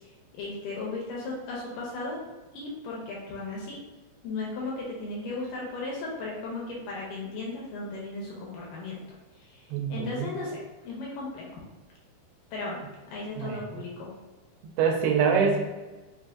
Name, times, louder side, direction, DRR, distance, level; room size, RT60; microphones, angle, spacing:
voice 1, 0.3-2.2 2.5-3.8 4.2-9.0 9.5-9.6 9.9-11.5 12.5-12.8 13.1-14.1, left 3 dB, 80° left, -3 dB, 2.0 m, -36 dB
voice 2, 9.7-10.3 13.4-13.7 14.8-15.7, right 6 dB, 85° right, 1 dB, 2.6 m, -25 dB
6.0 x 2.5 x 2.4 m, 1.2 s
omnidirectional pair, 4.5 m